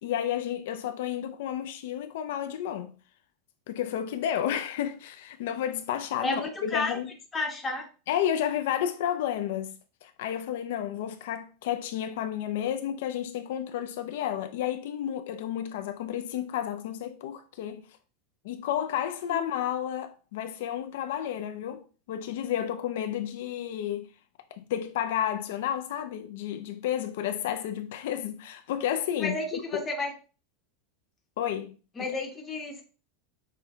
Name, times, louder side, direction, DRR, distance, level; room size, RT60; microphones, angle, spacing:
voice 1, 0.0-2.9 3.7-7.1 8.1-9.7 10.0-17.8 18.4-24.1 24.5-29.8 31.4-31.7, left 10 dB, 75° left, 0.4 m, -31 dB
voice 2, 6.2-7.0 7.3-7.8 19.3-19.4 29.2-30.1 32.0-32.8, left 2 dB, 15° left, 0.9 m, -31 dB
5.9 x 2.2 x 3.4 m
supercardioid pair, 155°, 0 cm